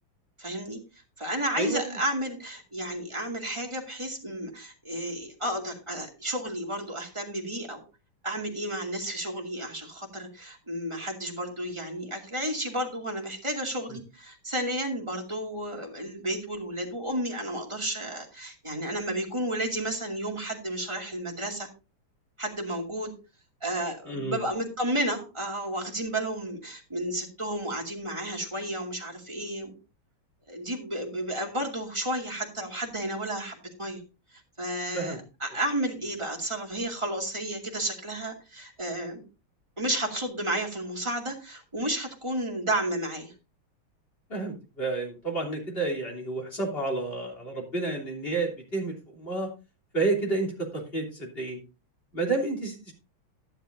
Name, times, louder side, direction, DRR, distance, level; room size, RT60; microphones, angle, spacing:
voice 1, 0.4-0.8 1.2-7.8 8.2-21.7 22.4-23.1 23.6-29.7 30.5-34.0 34.3-39.2 39.8-43.3, right 1 dB, 15° right, 1 dB, 2.4 m, -32 dB
voice 2, 1.6-2.0 13.9-14.0 24.1-24.4 34.9-35.2 44.3-49.5 49.9-51.6 52.1-52.9, right 3 dB, 25° left, 1 dB, 3.4 m, -30 dB
12.0 x 10.5 x 2.7 m, 0.30 s
omnidirectional pair, 2.3 m